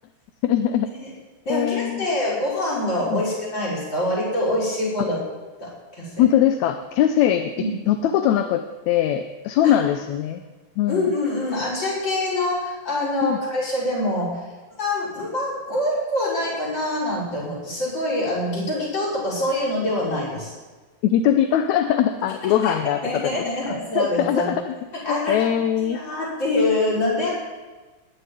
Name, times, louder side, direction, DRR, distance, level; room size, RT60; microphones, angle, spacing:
voice 1, 0.4-0.9 1.5-2.1 3.1-3.2 6.2-7.5 7.9-10.4 10.8-11.1 13.2-13.4 21.0-24.7 25.1-26.0, left 10 dB, 75° left, 8 dB, 2.0 m, -21 dB
voice 2, 1.4-5.2 5.6-6.2 7.6-7.7 9.6-9.8 10.9-14.4 14.8-20.5 22.6-22.8 23.0-24.5 25.0-25.5 25.8-27.3, left 1 dB, 35° left, -6 dB, 6.6 m, -25 dB
19.0 x 7.0 x 9.4 m, 1.3 s
omnidirectional pair, 3.6 m